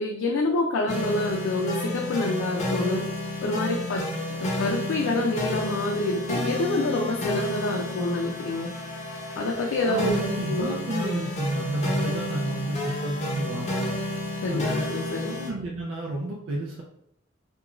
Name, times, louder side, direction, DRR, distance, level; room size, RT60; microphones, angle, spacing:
voice 1, 0.0-3.0 3.4-8.7 9.4-10.1 10.5-10.8 11.0-11.1 14.4-15.3, left 2 dB, 85° left, -1 dB, 0.4 m, -27 dB
sound 1, 0.9-15.5, left 1 dB, 35° left, 0.6 m, -31 dB
voice 2, 9.8-13.9 14.5-14.9 15.2-16.8, right 2 dB, 75° right, -2 dB, 0.4 m, -31 dB
2.4 x 2.2 x 2.9 m, 0.75 s
head